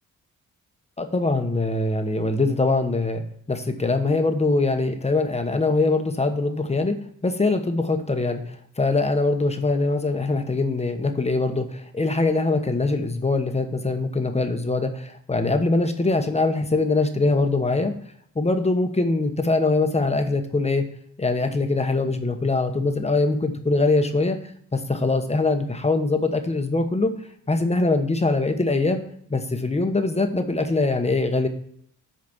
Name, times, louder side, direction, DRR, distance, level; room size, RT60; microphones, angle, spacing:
voice 1, 1.0-3.2 3.5-6.9 7.2-17.9 18.3-20.8 21.2-24.4 24.7-27.1 27.5-29.0 29.3-31.5, left 3 dB, 20° left, 6 dB, 1.1 m, -23 dB
8.0 x 5.1 x 7.1 m, 0.66 s
wide cardioid pair, 120°, 33 cm